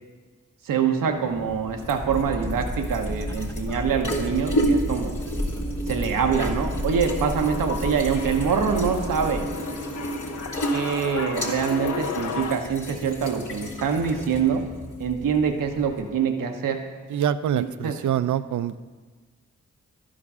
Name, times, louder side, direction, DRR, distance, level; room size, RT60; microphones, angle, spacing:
voice 1, 0.6-5.2 5.9-9.5 10.7-14.7 15.0-16.8 17.6-18.0, right 6 dB, 85° right, 5 dB, 0.8 m, -25 dB
sound 1, 1.1-16.2, right 1 dB, 75° left, 1.7 m, -32 dB
sound 2, 2.0-9.5, equal, 10° left, 0.7 m, -32 dB
sound 3, 6.9-12.6, left 5 dB, 55° left, 0.7 m, -34 dB
voice 2, 17.1-18.8, right 10 dB, 65° right, 14 dB, 0.5 m, -25 dB
11.5 x 5.0 x 5.4 m, 1.4 s
supercardioid pair, 45°, 32 cm